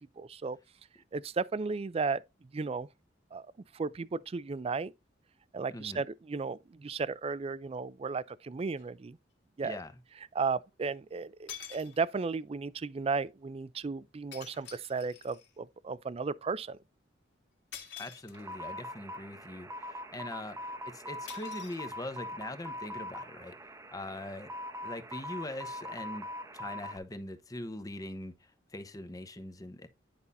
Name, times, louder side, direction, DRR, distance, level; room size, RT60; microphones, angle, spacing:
voice 1, 0.2-0.6 1.1-2.2 2.5-2.9 3.3-3.5 3.7-4.9 5.5-9.2 9.6-9.8 10.3-16.8, right 4 dB, 30° right, 0.4 m, -34 dB
voice 2, 5.7-6.0 9.6-9.9 18.0-24.5 24.8-26.3 26.5-29.9, left 1 dB, 20° left, 0.9 m, -42 dB
sound 1, 8.8-8.9 10.9-11.0 11.5-12.4 14.3-15.6 17.7-18.7 21.3-22.4, left 8 dB, 65° left, 1.9 m, -48 dB
sound 2, 18.3-27.0, left 1 dB, 15° right, 0.8 m, -42 dB
10.5 x 5.5 x 2.6 m
head